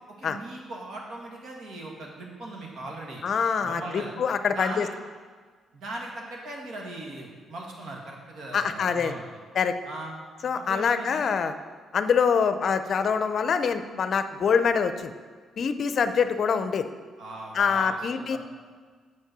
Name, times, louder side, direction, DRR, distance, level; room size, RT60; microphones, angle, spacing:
voice 1, 0.1-3.3 3.6-4.1 4.5-4.9 5.7-9.4 9.8-10.2 10.5-11.3 17.2-18.4, right 2 dB, 70° right, -1 dB, 2.0 m, -39 dB
voice 2, 3.2-4.9 8.5-9.1 9.6-9.7 10.4-11.5 11.9-15.1 15.6-16.9 17.5-18.4, left 6 dB, 55° left, 10 dB, 0.5 m, -25 dB
8.2 x 5.6 x 6.0 m, 1.6 s
cardioid pair, 90°, 0 cm